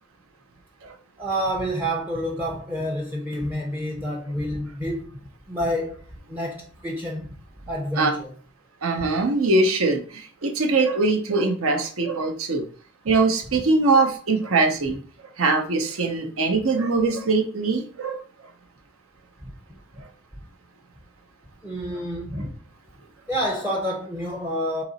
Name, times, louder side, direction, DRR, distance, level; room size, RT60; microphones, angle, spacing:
voice 1, 1.2-5.2 5.5-6.0 6.3-7.3 7.7-8.3 19.4-19.6 21.6-22.6 23.3-24.8, equal, 10° right, 0.5 m, -28 dB
voice 2, 8.8-12.6 13.0-15.0 15.4-18.2, right 3 dB, 75° right, 0.8 m, -22 dB
3.9 x 3.0 x 4.0 m
head